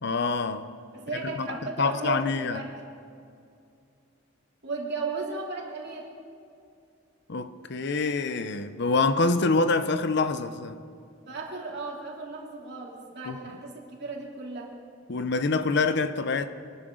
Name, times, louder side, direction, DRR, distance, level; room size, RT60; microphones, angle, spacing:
voice 1, 0.0-0.8 1.4-1.5 1.8-2.6 7.3-10.8 13.3-13.4 15.1-16.5, left 3 dB, 60° left, 0.7 m, -26 dB
voice 2, 0.9-2.7 4.6-6.1 11.3-14.7, right 3 dB, 60° right, 2.9 m, -35 dB
24.0 x 12.0 x 3.8 m
head